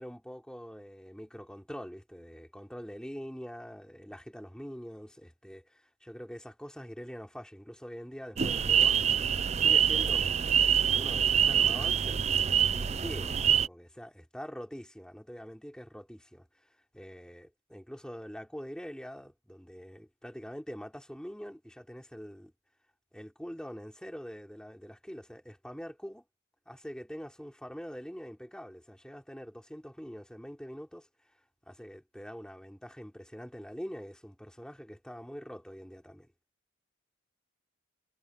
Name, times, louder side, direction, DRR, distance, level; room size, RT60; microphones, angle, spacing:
voice 1, 0.0-9.0 9.6-10.3 10.9-22.5 23.1-26.2 26.7-31.1 31.7-36.3, equal, 5° left, 3.6 m, -44 dB
sound 1, 8.4-13.7, right 8 dB, 30° right, 0.4 m, -25 dB
head